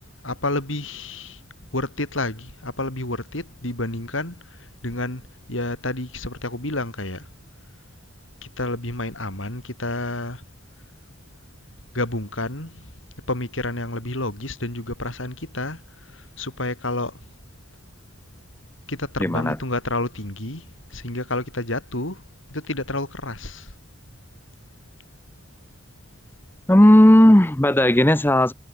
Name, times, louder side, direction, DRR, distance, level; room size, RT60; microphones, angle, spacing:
voice 1, 0.2-1.4 1.7-5.2 5.5-7.3 8.4-10.4 11.9-12.8 13.3-15.8 16.1-17.1 18.9-22.2 22.5-23.7, left 2 dB, 90° left, 5.6 m, -29 dB
voice 2, 19.2-19.6 26.7-28.5, left 1 dB, 10° left, 0.8 m, -14 dB
head